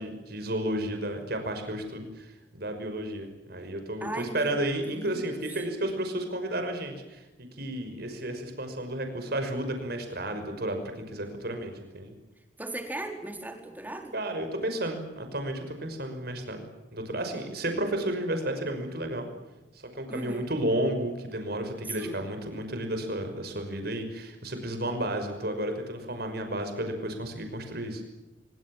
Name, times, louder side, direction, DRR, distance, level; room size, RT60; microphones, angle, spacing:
voice 1, 0.0-7.3 7.6-10.8 11.1-12.1 14.1-16.6 16.9-19.3 19.7-28.0, right 1 dB, 60° right, 6 dB, 5.7 m, -32 dB
voice 2, 4.0-4.6 4.9-5.2 12.6-14.1 20.1-20.5 21.9-22.2, right 1 dB, 10° right, 4 dB, 4.2 m, -37 dB
25.5 x 24.0 x 7.5 m, 1.0 s
head